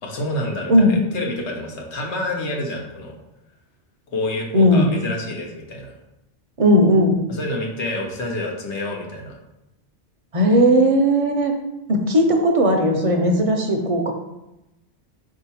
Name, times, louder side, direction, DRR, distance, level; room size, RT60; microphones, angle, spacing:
voice 1, 0.0-3.2 4.1-5.9 7.3-9.4, left 1 dB, 80° left, 1 dB, 1.1 m, -28 dB
voice 2, 4.5-4.9 6.6-7.3 10.3-11.5 11.9-14.1, equal, 45° right, 3 dB, 0.5 m, -17 dB
4.5 x 2.8 x 4.1 m, 0.92 s
omnidirectional pair, 1.2 m